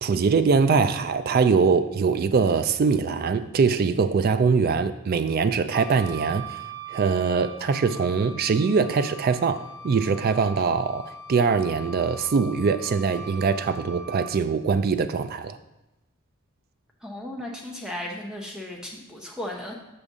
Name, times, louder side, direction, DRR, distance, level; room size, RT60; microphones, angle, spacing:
voice 1, 0.0-6.6 6.9-11.0 11.3-15.6, right 5 dB, 45° right, 11 dB, 0.3 m, -22 dB
Wind instrument woodwind instrument, 5.7-14.3, right 3 dB, 75° right, 2.3 m, -41 dB
voice 2, 17.0-19.7, left 1 dB, 5° right, -1 dB, 0.8 m, -35 dB
6.7 x 5.1 x 3.6 m, 0.96 s
head